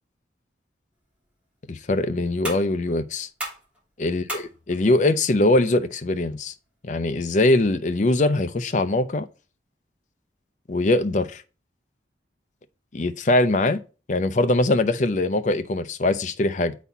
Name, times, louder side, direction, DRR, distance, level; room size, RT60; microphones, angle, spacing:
sound 1, 0.9-7.9, equal, 10° right, 2.9 m, -41 dB
voice 1, 1.7-3.3 4.0-6.5 6.8-9.3 10.7-11.4 12.9-13.8 14.1-16.8, left 2 dB, 45° left, 0.5 m, -22 dB
8.1 x 4.1 x 4.1 m
head